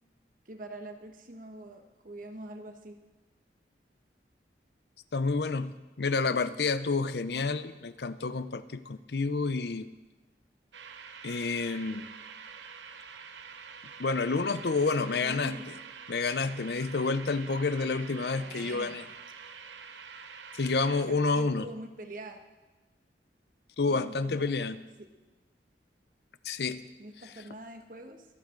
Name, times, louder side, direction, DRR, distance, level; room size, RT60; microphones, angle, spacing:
voice 1, 0.5-3.0 15.2-15.6 18.3-19.0 21.0-22.4 23.9-24.5 25.0-25.1 27.0-28.3, right 1 dB, 50° right, 5 dB, 1.3 m, -44 dB
voice 2, 5.1-9.9 11.2-12.0 14.0-15.6 16.1-19.0 20.5-21.7 23.8-24.8 26.4-26.8, left 4 dB, 65° left, 14 dB, 0.6 m, -29 dB
sound 1, 10.7-21.0, right 6 dB, 90° right, 0.9 m, -46 dB
23.5 x 8.8 x 3.9 m, 1.2 s
head